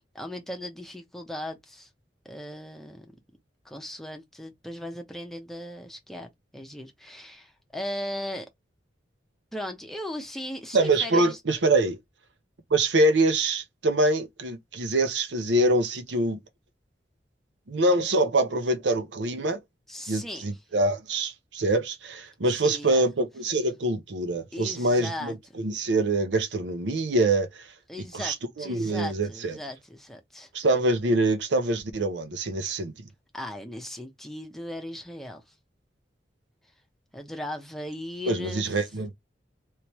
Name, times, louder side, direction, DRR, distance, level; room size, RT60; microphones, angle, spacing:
voice 1, 0.1-1.9 2.2-3.1 3.6-8.5 9.5-11.4 19.9-20.5 22.5-23.1 24.5-25.3 27.9-30.5 33.3-35.5 37.1-38.8, left 1 dB, ahead, 0.8 m, -37 dB
voice 2, 10.7-12.0 12.7-16.4 17.7-19.6 20.1-27.7 28.1-29.5 30.5-32.9 38.3-39.1, right 2 dB, 90° right, 0.7 m, -25 dB
3.2 x 3.0 x 3.0 m
head